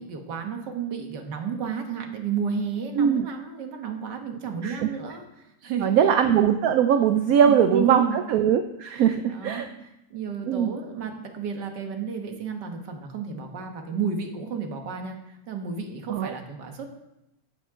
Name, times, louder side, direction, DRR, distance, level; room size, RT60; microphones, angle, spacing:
voice 1, 0.0-5.2 5.6-5.9 7.4-8.2 8.9-9.0 9.3-9.7 10.1-16.9, right 6 dB, 85° right, 4 dB, 1.9 m, -31 dB
voice 2, 2.9-3.3 4.6-4.9 5.8-9.7 10.5-10.7 16.1-16.3, right 8 dB, 70° right, 8 dB, 0.9 m, -21 dB
12.5 x 9.3 x 3.7 m, 0.88 s
omnidirectional pair, 1.8 m